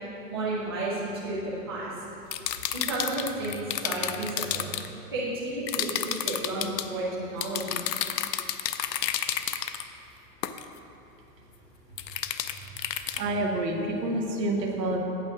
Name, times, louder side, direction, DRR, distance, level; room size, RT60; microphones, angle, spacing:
voice 1, 0.3-1.9 2.7-3.6 3.8-4.7 5.1-7.1 7.3-7.9, right 2 dB, 15° right, -9 dB, 0.5 m, -32 dB
sound 1, 2.3-4.9 5.7-6.9 7.4-9.8 10.4-10.6 12.0-13.2, left 11 dB, 85° left, 0.6 m, -30 dB
voice 2, 13.2-15.0, right 2 dB, 80° right, 1 dB, 1.5 m, -28 dB
8.6 x 7.5 x 3.8 m, 2.9 s
hypercardioid pair, 175°, 49 cm